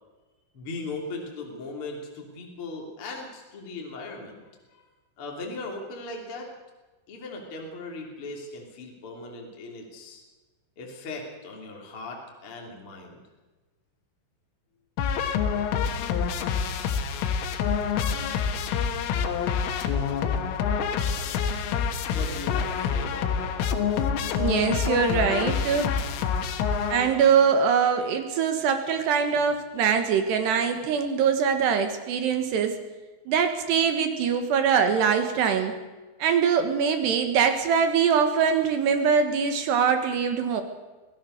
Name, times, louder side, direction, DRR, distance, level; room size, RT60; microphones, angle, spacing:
voice 1, 0.5-4.8 5.2-6.5 7.1-10.2 10.8-13.2 22.1-23.5, left 2 dB, 30° left, 0 dB, 3.2 m, -38 dB
sound 1, 15.0-27.4, left 7 dB, 80° left, 3.9 m, -27 dB
voice 2, 24.4-25.9 26.9-32.8 33.3-35.8 36.2-40.6, right 6 dB, 65° right, 7 dB, 3.2 m, -23 dB
25.0 x 16.5 x 6.6 m, 1.2 s
omnidirectional pair, 5.9 m